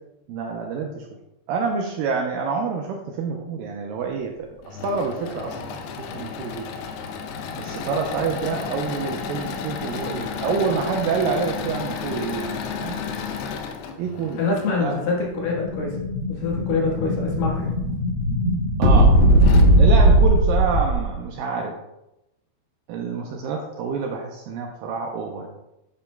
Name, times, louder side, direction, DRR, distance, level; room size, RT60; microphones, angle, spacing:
voice 1, 0.3-1.1 1.5-6.7 7.6-13.0 14.0-14.4 14.8-15.0 18.8-19.2 19.8-21.8 22.9-25.5, right 5 dB, 80° right, 2 dB, 2.1 m, -27 dB
Engine / Mechanisms, 4.4-14.7 16.3-17.1 17.7-17.8 18.1-18.2 19.0-19.1 19.4-19.6, left 6 dB, 85° left, 2.8 m, -32 dB
voice 2, 14.4-16.0 16.3-17.7, left 4 dB, 65° left, -2 dB, 2.9 m, -25 dB
Explosion, 15.1-21.2, right 1 dB, 65° right, 1.3 m, -18 dB
9.2 x 8.6 x 2.2 m, 0.90 s
omnidirectional pair, 4.6 m